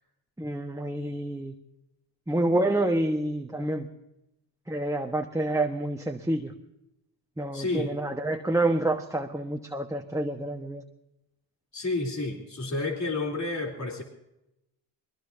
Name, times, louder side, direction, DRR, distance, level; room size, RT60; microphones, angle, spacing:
voice 1, 0.4-1.5 2.3-3.9 4.7-6.5 7.4-10.8, right 1 dB, 5° right, 3 dB, 1.3 m, -28 dB
voice 2, 7.5-7.9 11.7-14.0, left 2 dB, 35° left, 1 dB, 3.5 m, -30 dB
22.5 x 20.5 x 2.8 m, 0.89 s
supercardioid pair, 50°, 46 cm